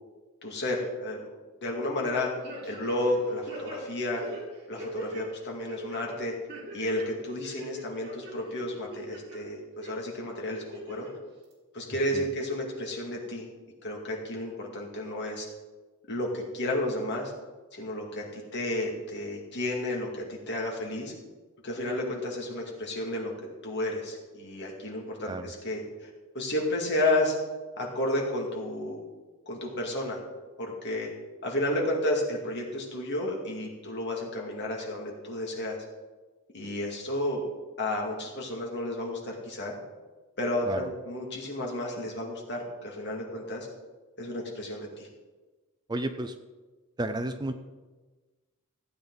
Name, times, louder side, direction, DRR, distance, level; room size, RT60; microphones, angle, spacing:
voice 1, 0.4-1.3 1.6-2.3 2.6-4.2 4.7-6.3 6.7-11.1 11.7-13.5 13.8-15.5 16.1-17.3 17.7-21.1 21.6-23.3 23.6-27.4 27.8-29.0 29.5-30.2 30.6-31.1 31.4-35.8 36.5-37.5 37.8-39.8 40.4-43.7 44.2-45.1, left 1 dB, 50° left, -1 dB, 2.4 m, -32 dB
sound 1, 2.4-3.2 3.5-5.2 5.7-6.0 6.5-7.1 7.4-8.3 8.7-9.4 9.8-9.9 10.5-11.1 11.5-11.6, right 1 dB, 50° right, 3.9 m, -41 dB
voice 2, 45.9-46.3 47.0-47.5, right 1 dB, 20° right, 9 dB, 0.5 m, -32 dB
15.5 x 8.6 x 4.0 m, 1.3 s
head